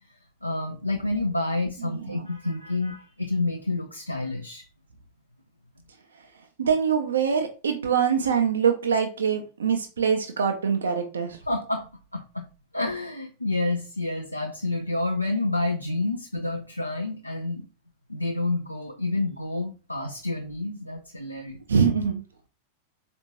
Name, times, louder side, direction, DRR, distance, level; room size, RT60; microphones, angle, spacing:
voice 1, 0.4-4.6 11.5-12.5 12.7-17.7 18.1-21.6, left 2 dB, 85° left, 3 dB, 0.4 m, -29 dB
voice 2, 1.8-2.3 6.2-6.3 6.6-11.4 21.7-22.2, right 6 dB, 70° right, 5 dB, 0.4 m, -24 dB
4.2 x 2.5 x 2.9 m, 0.33 s
figure-of-eight pair, 90°, 0 cm